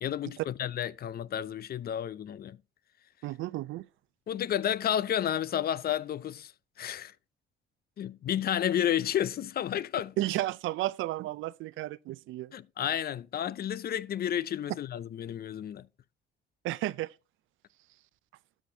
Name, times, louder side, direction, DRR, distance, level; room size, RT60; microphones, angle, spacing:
voice 1, 0.0-2.6 4.3-6.5 6.8-7.1 8.0-10.2 12.5-15.9, left 10 dB, 50° left, 0.5 m, -31 dB
voice 2, 3.2-3.9 10.2-12.5 16.6-17.1, right 16 dB, 85° right, 0.4 m, -33 dB
12.5 x 5.0 x 2.7 m
cardioid pair, 90°, 20 cm